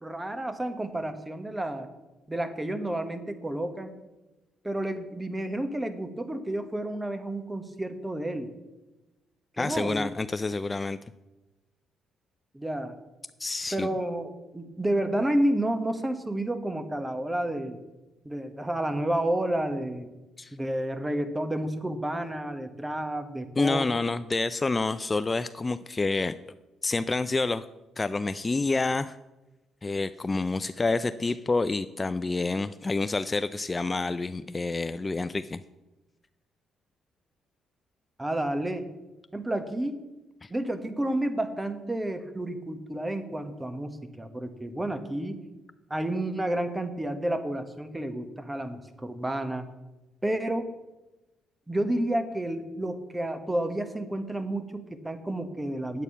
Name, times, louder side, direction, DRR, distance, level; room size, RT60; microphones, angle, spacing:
voice 1, 0.0-1.9 2.3-3.9 4.6-8.5 9.6-10.1 12.5-12.9 13.7-17.8 18.2-20.1 20.5-23.9 38.2-38.9 39.3-40.0 40.5-45.4 45.9-49.7 50.2-50.7 51.7-56.0, right 1 dB, 15° right, 9 dB, 1.3 m, -30 dB
voice 2, 9.6-11.0 13.4-13.9 20.4-20.5 23.6-26.3 26.8-27.6 28.0-29.2 29.8-35.6 40.4-40.5, left 3 dB, 25° left, 13 dB, 0.4 m, -28 dB
9.1 x 8.2 x 5.7 m, 1.1 s
supercardioid pair, 65°, 0 cm